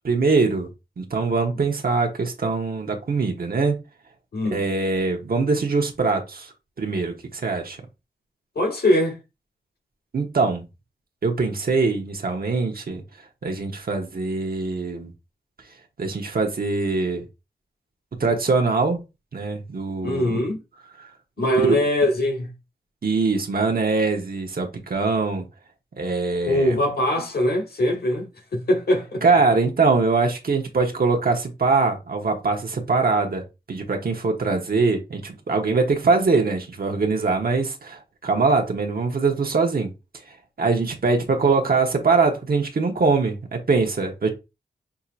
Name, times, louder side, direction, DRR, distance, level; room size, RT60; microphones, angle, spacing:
voice 1, 0.0-0.7 1.0-3.8 4.5-6.5 6.8-7.8 10.1-10.6 11.2-13.0 13.4-15.1 16.0-17.2 18.2-19.0 19.3-20.4 21.6-21.8 23.0-25.4 26.0-26.8 29.2-39.9 40.6-44.3, right 4 dB, 60° right, 1.1 m, -22 dB
voice 2, 4.3-4.6 8.5-9.2 20.0-20.6 21.4-22.5 26.4-29.2, left 1 dB, 65° left, 1.1 m, -22 dB
5.9 x 2.8 x 2.5 m
wide cardioid pair, 65°, 17 cm